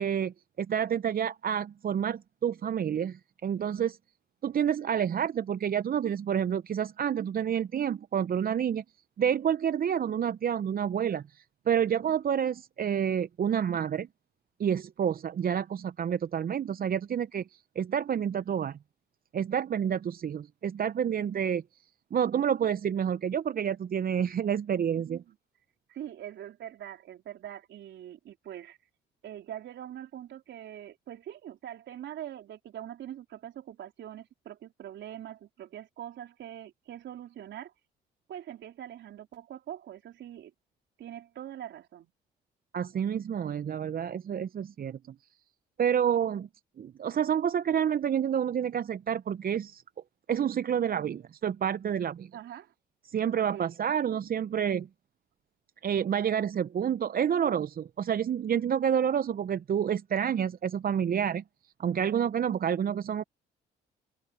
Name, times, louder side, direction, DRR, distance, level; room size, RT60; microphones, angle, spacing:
voice 1, 0.0-4.0 4.4-8.8 9.2-14.1 14.6-18.8 19.3-21.6 22.1-25.2 42.7-45.0 45.8-46.5 46.8-49.8 50.3-52.3 53.0-54.9 55.8-61.4 61.8-63.2, right 8 dB, 45° right, 0.9 m, -29 dB
voice 2, 24.9-25.4 25.9-28.8 29.2-37.7 38.3-40.5 41.0-42.1 52.3-52.7 53.5-53.8, right 11 dB, 65° right, 4.0 m, -43 dB
hypercardioid pair, 55°, 20 cm